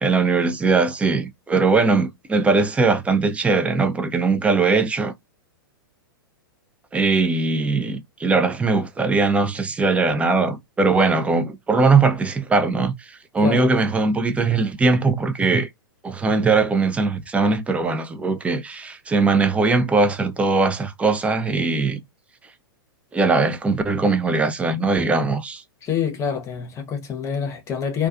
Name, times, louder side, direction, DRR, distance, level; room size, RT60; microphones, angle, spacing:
voice 1, 0.0-5.1 6.9-15.7 16.0-22.0 23.1-25.6, right 3 dB, 10° right, 0.4 m, -20 dB
voice 2, 13.4-13.7 25.8-28.1, left 7 dB, 25° left, 0.8 m, -26 dB
2.3 x 2.3 x 2.5 m
hypercardioid pair, 110°, 12 cm